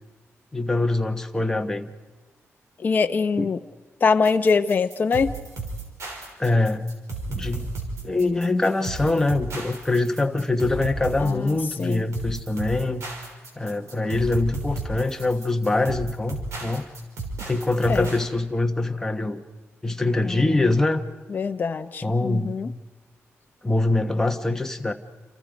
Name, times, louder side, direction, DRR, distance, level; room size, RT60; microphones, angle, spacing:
voice 1, 0.5-1.9 3.4-3.5 6.4-6.9 7.3-7.7 8.0-13.0 13.6-16.9 17.5-19.4 19.8-21.0 22.0-22.6 23.6-24.9, left 2 dB, 10° left, 4 dB, 1.3 m, -24 dB
voice 2, 2.8-3.6 4.0-5.4 11.2-12.0 17.9-18.1 20.2-20.6 21.3-22.7, left 5 dB, 40° left, 6 dB, 0.7 m, -23 dB
sound 1, 4.2-18.3, right 3 dB, 85° right, 5.5 m, -34 dB
29.0 x 27.5 x 5.2 m, 1.2 s
wide cardioid pair, 165°, 5 cm